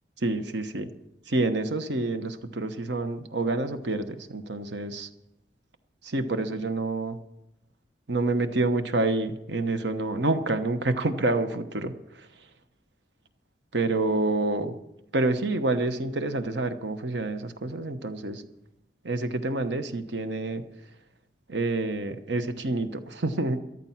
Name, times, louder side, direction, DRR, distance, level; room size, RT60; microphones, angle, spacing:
voice 1, 0.2-0.9 1.3-5.1 6.0-7.2 8.1-12.3 13.7-14.7 15.1-18.4 19.0-20.6 21.5-23.6, right 2 dB, 65° right, 9 dB, 1.1 m, -28 dB
14.0 x 12.0 x 5.8 m, 0.88 s
head